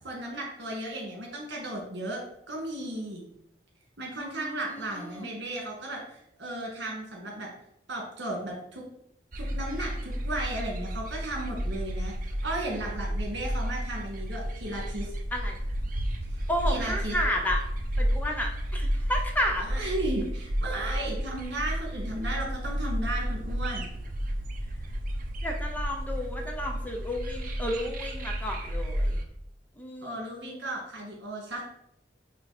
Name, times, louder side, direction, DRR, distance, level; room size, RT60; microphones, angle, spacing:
voice 1, 0.0-2.2 2.5-3.2 4.0-7.5 7.9-8.8 9.4-12.1 12.4-15.1 16.3-17.2 19.6-23.9 30.0-31.6, right 1 dB, 75° right, -1 dB, 2.1 m, -35 dB
voice 2, 4.2-5.3 15.3-15.6 16.5-17.6 18.0-19.7 25.4-29.2 29.8-30.2, equal, 10° left, 1 dB, 0.8 m, -32 dB
sound 1, 9.3-29.2, equal, 50° right, 0.9 m, -32 dB
9.0 x 3.1 x 4.2 m, 0.76 s
head